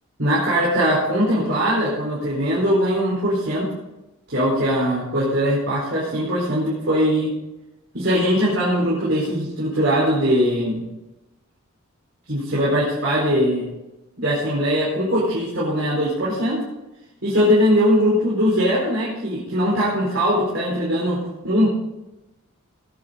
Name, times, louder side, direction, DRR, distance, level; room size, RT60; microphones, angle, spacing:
voice 1, 0.2-3.7 4.3-7.3 7.9-10.8 12.3-13.6 14.2-16.6 17.2-21.7, equal, 60° right, -6 dB, 4.6 m, -21 dB
19.0 x 10.0 x 4.0 m, 0.98 s
head